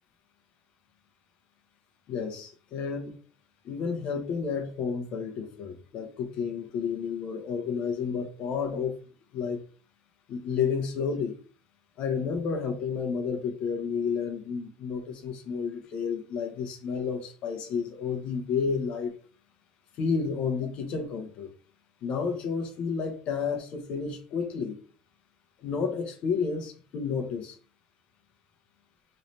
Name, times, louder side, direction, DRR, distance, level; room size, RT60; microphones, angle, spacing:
voice 1, 2.1-3.2 3.6-9.0 9.3-9.6 10.3-11.3 12.0-19.1 20.0-21.5 22.0-24.8 25.6-27.6, left 6 dB, 55° left, 0.9 m, -31 dB
3.2 x 2.9 x 4.0 m
cardioid pair, 135°, 2 cm